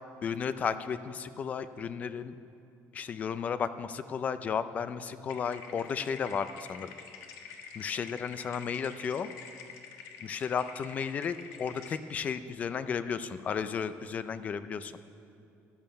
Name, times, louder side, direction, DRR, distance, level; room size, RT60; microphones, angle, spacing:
voice 1, 0.2-2.4 2.9-6.9 7.7-9.3 10.2-14.9, left 6 dB, 25° left, 13 dB, 0.4 m, -33 dB
sound 1, 5.3-12.0, left 6 dB, 80° left, 1.4 m, -47 dB
14.0 x 11.0 x 5.7 m, 2.6 s
cardioid pair, 180°, 6 cm